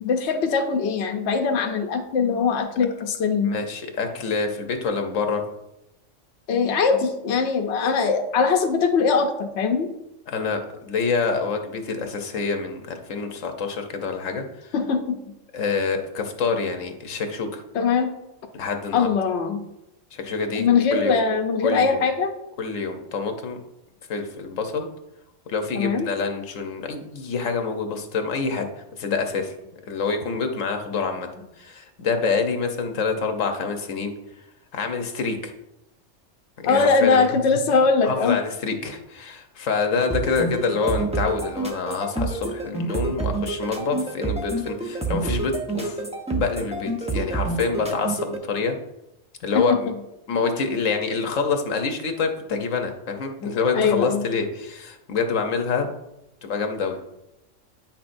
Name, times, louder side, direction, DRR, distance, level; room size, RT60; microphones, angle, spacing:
voice 1, 0.0-3.5 6.5-9.9 14.7-15.1 17.7-18.1 18.9-19.6 20.6-22.3 25.7-26.1 36.6-38.4 49.5-49.6 53.7-54.2, left 5 dB, 65° left, 4 dB, 0.9 m, -21 dB
voice 2, 3.4-5.4 10.3-14.4 15.5-17.6 18.5-19.1 20.1-20.7 20.9-21.2 21.6-22.1 22.6-23.6 24.1-24.9 25.5-28.7 29.0-29.5 29.9-31.3 31.6-34.1 34.7-35.5 36.6-37.4 38.0-46.0 46.3-48.7 49.4-49.8 50.3-55.9 56.4-57.0, left 4 dB, 80° left, 5 dB, 1.2 m, -26 dB
sound 1, 40.1-48.4, right 3 dB, 5° right, 0.6 m, -28 dB
9.1 x 5.8 x 2.6 m, 0.88 s
omnidirectional pair, 1.3 m